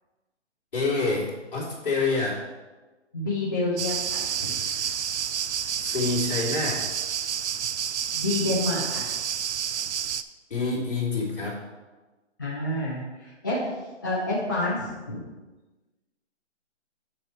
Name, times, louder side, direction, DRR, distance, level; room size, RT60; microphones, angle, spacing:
voice 1, 0.7-2.4 5.8-6.8 10.5-11.6, left 3 dB, 45° left, -5 dB, 2.7 m, -27 dB
voice 2, 3.1-4.5 8.1-9.0 12.4-13.6 14.0-15.2, left 2 dB, 15° left, -9 dB, 0.6 m, -28 dB
sound 1, 3.8-10.2, right 8 dB, 70° right, 0.5 m, -29 dB
8.7 x 4.5 x 4.5 m, 1.2 s
hypercardioid pair, 175°, 36 cm